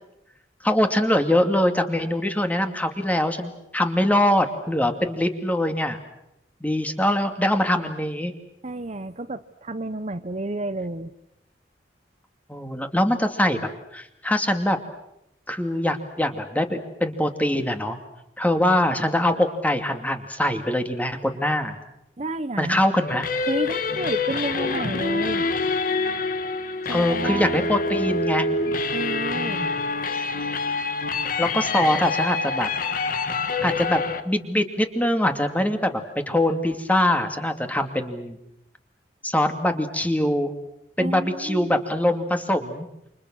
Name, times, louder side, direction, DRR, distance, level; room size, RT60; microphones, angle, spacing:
voice 1, 0.6-6.0 6.6-8.3 12.5-14.8 15.5-18.0 18.4-21.8 22.6-23.3 26.9-28.5 29.3-29.8 31.4-32.7 33.6-38.4 39.2-40.5 41.0-42.9, left 1 dB, 10° left, 6 dB, 2.6 m, -23 dB
voice 2, 8.6-11.1 22.2-22.8 23.4-25.5 26.8-27.7 28.9-29.7 41.0-41.7, right 2 dB, 40° right, 11 dB, 0.9 m, -31 dB
sound 1, 23.1-34.2, left 3 dB, 50° left, 1.8 m, -26 dB
29.5 x 27.5 x 6.4 m, 0.82 s
head